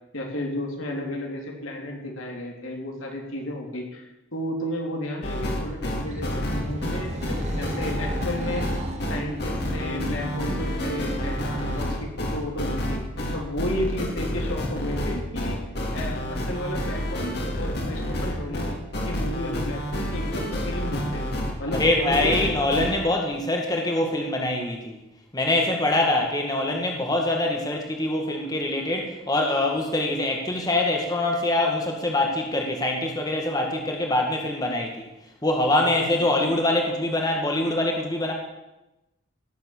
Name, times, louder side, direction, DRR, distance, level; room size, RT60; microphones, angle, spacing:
voice 1, 0.1-8.7 9.1-13.0 13.3-15.6 15.9-18.7 19.0-21.2 21.6-22.5 35.8-36.3, left 1 dB, 90° left, 0 dB, 3.4 m, -33 dB
sound 1, 5.2-22.9, equal, 50° left, 2.7 m, -29 dB
sound 2, 5.8-12.0, equal, 35° right, 1.8 m, -35 dB
voice 2, 21.7-25.0 25.3-35.1 35.4-38.3, left 1 dB, 20° left, 1 dB, 1.8 m, -24 dB
17.5 x 7.5 x 7.2 m, 0.97 s
head